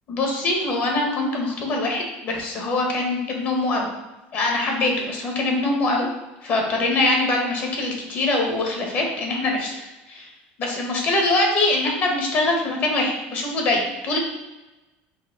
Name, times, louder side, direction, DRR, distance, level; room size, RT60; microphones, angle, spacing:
voice 1, 0.1-3.9 4.3-6.1 6.4-10.3 10.6-14.2, left 2 dB, 45° left, 0 dB, 1.2 m, -23 dB
4.8 x 2.7 x 3.8 m, 1.1 s
cardioid pair, 140°, 5 cm